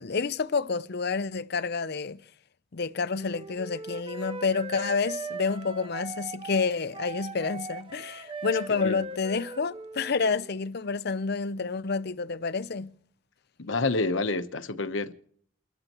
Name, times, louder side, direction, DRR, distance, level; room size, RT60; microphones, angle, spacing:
voice 1, 0.0-2.2 2.7-12.9, left 4 dB, 60° left, 0.7 m, -29 dB
Wind instrument woodwind instrument, 3.1-10.6, right 3 dB, 30° right, 0.7 m, -40 dB
voice 2, 13.6-15.1, left 3 dB, 85° left, 1.0 m, -28 dB
29.5 x 13.5 x 3.0 m
head